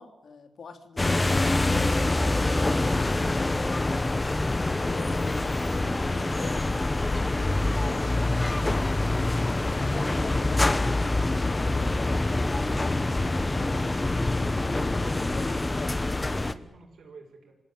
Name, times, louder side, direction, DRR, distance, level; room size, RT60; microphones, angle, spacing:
voice 1, 0.0-1.6 2.1-4.2 4.8-8.2 8.5-8.9 9.7-13.0 13.3-16.5, left 5 dB, 70° left, 7 dB, 3.3 m, -44 dB
sound 1, 1.0-16.5, left 2 dB, 20° left, 1.1 m, -25 dB
voice 2, 16.4-17.5, right 4 dB, 80° right, 0 dB, 7.2 m, -52 dB
26.5 x 17.5 x 9.1 m, 0.96 s
wide cardioid pair, 120°, 0 cm